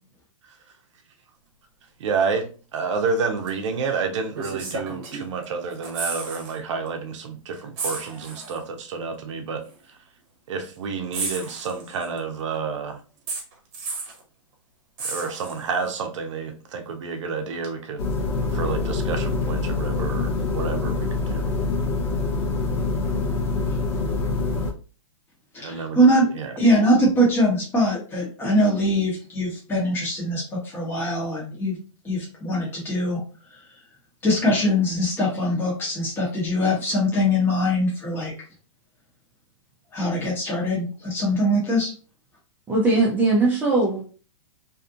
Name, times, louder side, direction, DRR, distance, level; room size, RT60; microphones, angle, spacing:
voice 1, 2.0-2.5 2.7-9.6 10.5-13.0 15.0-18.1 18.4-21.5 25.6-26.0 26.3-26.5, right 5 dB, 65° right, 5 dB, 0.6 m, -29 dB
sound 1, 3.5-3.6 4.3-5.4 5.7-6.6 6.9-7.0 7.8-8.6 9.7-9.8 11.1-12.2 13.3-14.2 15.0-15.9 17.6-17.7, right 3 dB, 40° right, 0.9 m, -33 dB
sound 2, 18.0-24.7, left 3 dB, 50° left, 0.8 m, -25 dB
voice 2, 25.5-26.3 26.6-31.8 32.0-33.2 34.2-38.3 39.9-41.9, equal, 15° left, -5 dB, 0.9 m, -22 dB
voice 3, 42.7-44.0, right 2 dB, 10° right, -5 dB, 0.5 m, -20 dB
2.7 x 2.4 x 2.4 m, 0.37 s
hypercardioid pair, 135°, 17 cm